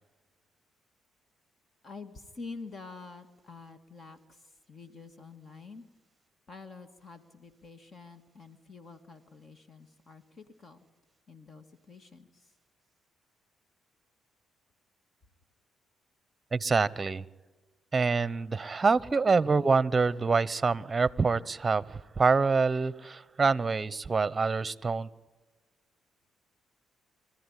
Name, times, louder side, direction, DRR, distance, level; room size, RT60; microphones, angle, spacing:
voice 1, 1.8-5.9 6.5-10.8 11.3-12.5, left 4 dB, 40° left, 9 dB, 1.9 m, -48 dB
voice 2, 16.5-17.2 17.9-25.1, right 4 dB, 25° right, 20 dB, 0.9 m, -26 dB
25.5 x 14.5 x 9.9 m, 1.2 s
cardioid pair, 90°, 0 cm